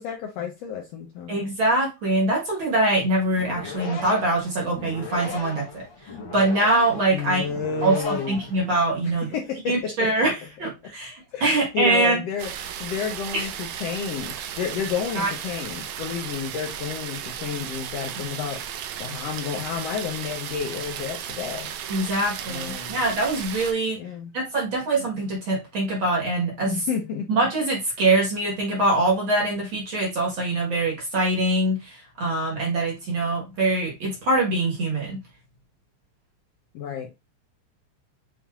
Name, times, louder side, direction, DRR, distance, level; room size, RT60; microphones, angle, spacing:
voice 1, 0.0-1.4 7.1-8.5 9.0-10.1 11.3-21.7 22.5-23.0 24.0-24.3 26.6-27.4 36.7-37.1, left 7 dB, 75° left, 1.5 m, -31 dB
voice 2, 1.3-7.5 7.8-9.3 9.7-12.2 13.3-13.5 15.2-15.3 21.9-24.0 24.3-26.8 27.3-35.2, right 2 dB, 50° right, 1.7 m, -24 dB
sound 1, 3.3-9.0, left 4 dB, 60° left, 1.4 m, -37 dB
sound 2, 12.4-23.7, right 9 dB, 80° right, 1.9 m, -35 dB
7.3 x 2.9 x 2.4 m
omnidirectional pair, 3.4 m